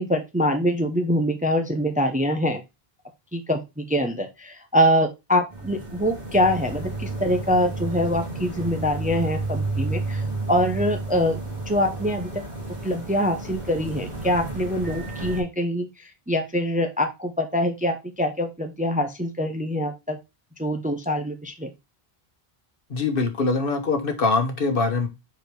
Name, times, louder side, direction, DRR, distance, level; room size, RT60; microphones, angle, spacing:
voice 1, 0.0-2.6 3.3-11.4 11.7-12.4 12.8-20.2 20.6-21.7, equal, 10° right, 0.6 m, -24 dB
sound 1, 5.5-15.4, right 2 dB, 45° right, 2.5 m, -32 dB
voice 2, 22.9-25.1, left 3 dB, 60° left, 1.3 m, -23 dB
5.0 x 4.5 x 4.5 m
omnidirectional pair, 1.0 m